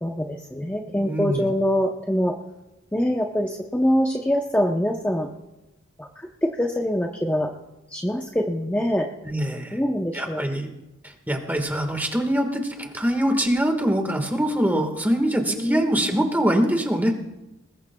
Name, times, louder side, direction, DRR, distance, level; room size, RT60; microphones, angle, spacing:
voice 1, 0.0-2.4 2.9-5.3 6.0-7.5 7.9-9.1 9.7-10.5 15.5-15.8, equal, 10° left, 1 dB, 0.7 m, -24 dB
voice 2, 0.8-1.5 9.2-9.8 10.1-10.8 11.0-17.2, equal, 10° right, 4 dB, 1.5 m, -24 dB
21.0 x 20.0 x 2.3 m, 0.98 s
head